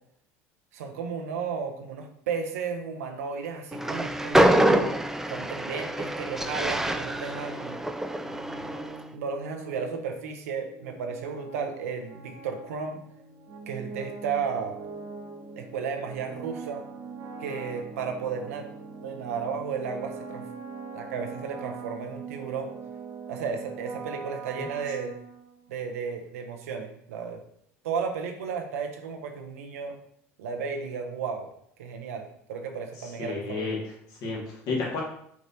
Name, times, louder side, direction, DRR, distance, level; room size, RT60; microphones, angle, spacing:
voice 1, 0.7-4.7 5.3-7.8 9.1-13.0 13.7-14.8 15.6-16.8 17.4-18.7 19.0-20.4 20.9-22.7 23.3-25.2 25.7-27.4 27.8-29.9 30.4-31.5 31.8-33.7, right 6 dB, 80° right, 5 dB, 0.7 m, -33 dB
Train, 3.7-9.0, right 1 dB, 5° right, 0.3 m, -25 dB
sound 1, 8.2-25.8, right 5 dB, 45° right, 0.7 m, -42 dB
voice 2, 33.0-35.0, left 4 dB, 55° left, -2 dB, 1.7 m, -32 dB
4.7 x 4.0 x 2.7 m, 0.69 s
hypercardioid pair, 80°, 8 cm